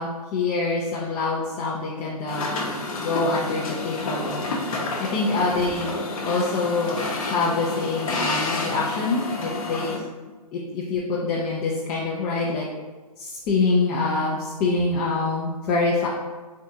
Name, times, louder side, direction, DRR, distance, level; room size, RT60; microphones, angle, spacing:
voice 1, 0.0-2.7 3.0-10.0 10.5-12.7 13.2-16.1, left 3 dB, 20° left, -5 dB, 0.4 m, -25 dB
sound 1, 2.3-10.0, left 2 dB, 60° left, 0.8 m, -30 dB
3.6 x 3.4 x 2.7 m, 1.3 s
figure-of-eight pair, 125°, 20 cm